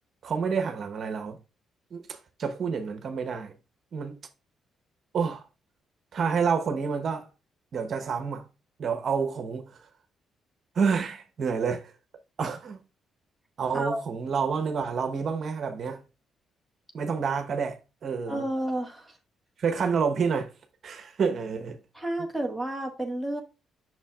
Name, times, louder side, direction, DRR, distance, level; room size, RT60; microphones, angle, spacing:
voice 1, 0.2-1.4 1.9-3.5 3.9-4.2 5.1-5.4 6.1-7.3 7.7-8.4 8.8-9.7 10.7-11.9 12.4-12.8 13.6-16.0 16.9-18.4 19.6-20.5 20.8-21.8, right 6 dB, 55° right, 1.0 m, -28 dB
voice 2, 18.3-19.2 21.9-23.4, right 1 dB, ahead, 1.6 m, -31 dB
7.3 x 6.1 x 2.4 m
cardioid pair, 90°, 0 cm